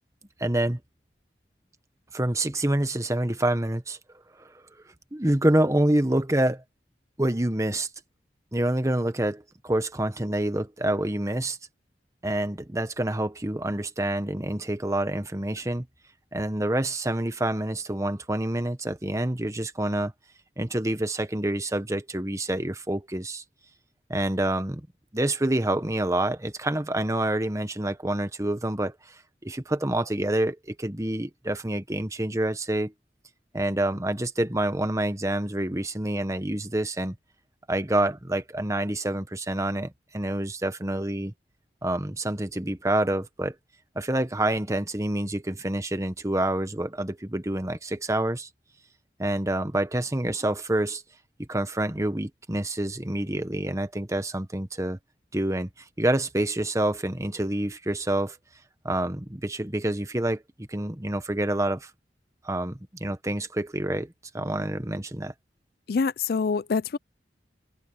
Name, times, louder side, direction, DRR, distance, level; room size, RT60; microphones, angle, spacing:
voice 1, 0.4-0.8 2.1-4.0 4.4-4.5 5.1-6.6 7.2-7.9 8.5-11.6 12.2-15.9 16.3-20.1 20.6-23.4 24.1-24.9 25.1-32.9 33.5-37.2 37.7-41.3 41.8-43.5 43.9-48.5 49.2-51.0 51.4-55.0 55.3-58.4 58.8-61.9 62.4-65.3, right 1 dB, 20° right, 1.3 m, -27 dB
voice 2, 65.9-67.0, left 5 dB, 60° left, 0.4 m, -25 dB
open air
head